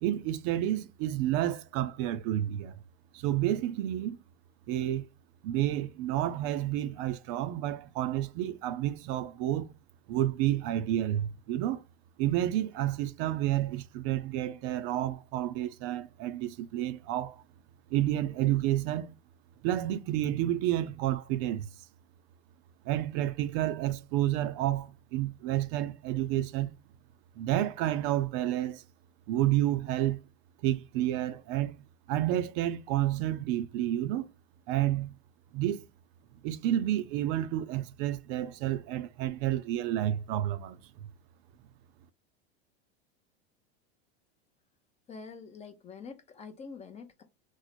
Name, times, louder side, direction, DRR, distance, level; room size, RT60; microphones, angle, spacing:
voice 1, 0.0-2.8 3.1-4.2 4.7-5.1 5.4-9.7 10.1-11.8 12.2-17.4 17.9-19.1 19.6-21.7 22.9-26.7 27.4-28.8 29.3-30.2 30.6-31.8 32.1-34.3 34.7-35.2 35.5-35.8 36.4-40.8, right 13 dB, 50° right, 0.5 m, -30 dB
voice 2, 45.1-47.2, left 5 dB, 20° left, 0.4 m, -46 dB
3.1 x 2.0 x 4.0 m
hypercardioid pair, 115°, 34 cm